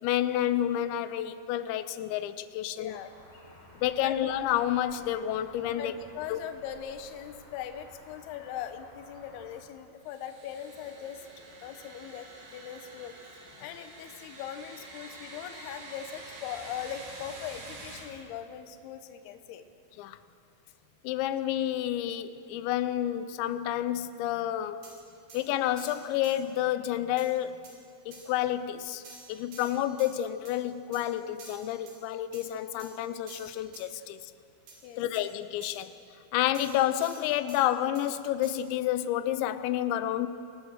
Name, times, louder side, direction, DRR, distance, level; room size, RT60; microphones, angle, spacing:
voice 1, 0.0-3.0 3.8-5.9 6.3-6.4 20.0-20.2 21.0-24.8 25.3-27.6 28.1-29.0 29.3-34.3 35.0-35.9 36.3-40.3, left 12 dB, 90° left, 12 dB, 3.0 m, -29 dB
voice 2, 2.7-3.1 4.0-4.2 5.7-11.3 11.6-12.3 12.5-13.1 13.6-19.6 24.7-24.8 34.8-35.0, left 9 dB, 70° left, 8 dB, 2.9 m, -40 dB
sound 1, 2.9-9.6, left 1 dB, 55° left, 5.7 m, -54 dB
sound 2, 10.0-18.0, right 2 dB, 90° right, 6.6 m, -47 dB
sound 3, 24.8-25.0 25.3-25.4 25.8-26.4 27.2-27.3 27.6-27.8 28.1-28.3 29.0-30.1 30.5-30.6 30.9-31.1 31.4-32.0 32.3-32.5 32.8-32.9 33.3-33.9 34.7-34.8 35.1-35.3 35.6-35.8 36.5-37.6 38.0-38.1 38.4-38.6, right 3 dB, 70° right, 5.8 m, -49 dB
27.0 x 19.5 x 6.4 m, 2.4 s
omnidirectional pair, 5.1 m